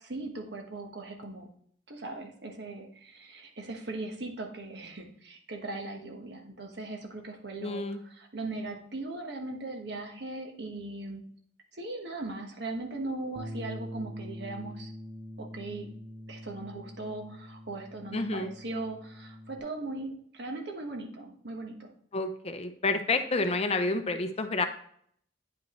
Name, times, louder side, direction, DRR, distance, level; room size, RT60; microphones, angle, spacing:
voice 1, 0.0-1.5 1.9-11.2 11.7-14.9 15.4-15.9 16.3-21.9, right 2 dB, 60° right, 3 dB, 1.3 m, -39 dB
voice 2, 7.6-8.0 18.1-18.5 22.1-24.6, left 3 dB, 35° left, 8 dB, 0.5 m, -29 dB
Bass guitar, 13.4-19.6, equal, 25° right, 0.6 m, -44 dB
9.3 x 5.3 x 3.1 m, 0.64 s
head